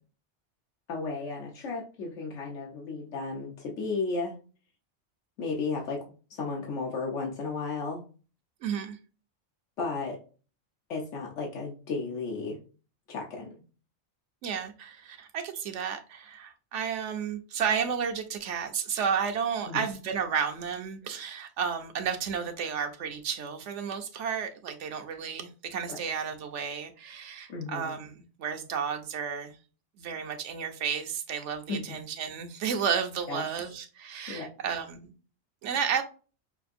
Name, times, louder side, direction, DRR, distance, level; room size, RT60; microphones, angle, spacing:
voice 1, 0.9-4.3 5.4-6.0 6.3-8.0 9.8-10.2 10.9-12.6 13.1-13.5 19.7-19.8 27.5-27.9 31.7-32.0 33.3-33.5 34.3-34.5, left 4 dB, 90° left, 1.1 m, -34 dB
voice 2, 8.6-9.0 14.4-29.6 30.0-35.1 35.6-36.0, right 7 dB, 85° right, 1.0 m, -32 dB
5.7 x 2.5 x 2.5 m
omnidirectional pair, 1.2 m